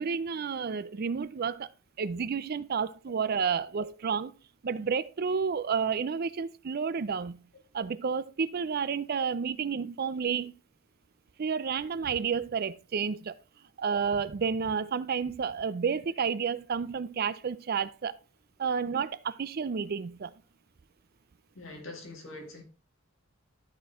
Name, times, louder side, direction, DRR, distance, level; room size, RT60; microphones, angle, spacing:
voice 1, 0.0-1.7 2.0-4.3 4.6-7.5 7.7-10.5 11.4-13.3 13.8-18.2 18.6-20.3, right 6 dB, 50° right, 0.4 m, -31 dB
voice 2, 21.5-22.6, left 2 dB, 70° left, 2.3 m, -43 dB
12.5 x 4.5 x 3.5 m
head